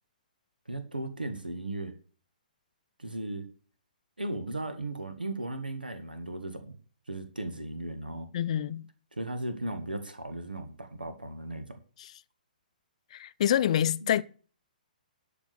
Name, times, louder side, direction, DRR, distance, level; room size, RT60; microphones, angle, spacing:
voice 1, 0.7-1.9 3.0-3.5 4.2-6.8 7.1-8.3 9.1-11.8 14.0-14.1, right 2 dB, 80° right, 1.8 m, -36 dB
voice 2, 8.3-8.9 12.0-12.1 13.1-14.2, left 10 dB, 45° left, 0.6 m, -27 dB
12.5 x 5.1 x 6.9 m
figure-of-eight pair, 120°, 5 cm